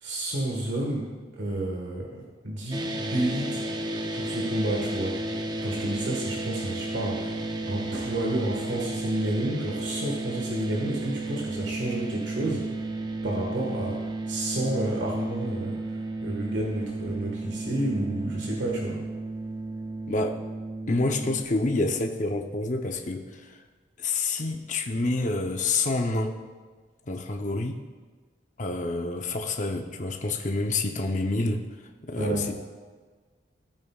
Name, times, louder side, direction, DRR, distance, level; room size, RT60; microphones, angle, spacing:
voice 1, 0.0-3.6 4.1-5.2 5.6-12.7 13.2-14.0 14.3-15.8 16.2-19.0 32.1-32.5, right 1 dB, 75° right, -2 dB, 1.6 m, -30 dB
sound 1, 2.7-21.4, right 2 dB, 20° right, 0.6 m, -33 dB
voice 2, 20.9-23.6 24.0-26.3 27.1-27.8 28.6-31.6 32.0-32.7, left 2 dB, 40° left, 3 dB, 0.8 m, -28 dB
16.0 x 8.8 x 2.4 m, 1.5 s
head